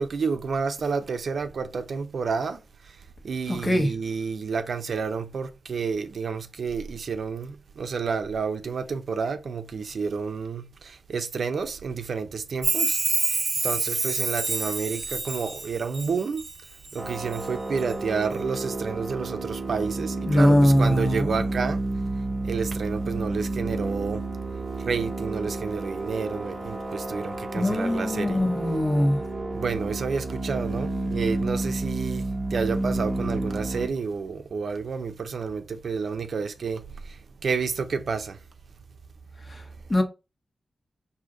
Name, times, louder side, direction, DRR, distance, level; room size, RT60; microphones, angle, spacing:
voice 1, 0.0-2.6 3.2-13.0 13.3-13.4 13.6-16.4 16.9-21.8 22.4-24.2 24.8-28.4 29.5-37.2 37.4-38.4, right 5 dB, 75° right, 0.6 m, -30 dB
voice 2, 3.5-3.9 20.2-21.4 27.5-29.2 39.4-40.0, equal, 30° left, 1.2 m, -22 dB
Chime, 12.6-16.5 16.9-17.4 17.8-17.9, right 3 dB, 45° right, 1.0 m, -27 dB
sound 1, 17.0-33.9, right 2 dB, 25° right, 1.1 m, -31 dB
5.0 x 2.7 x 3.8 m
wide cardioid pair, 95°, 0 cm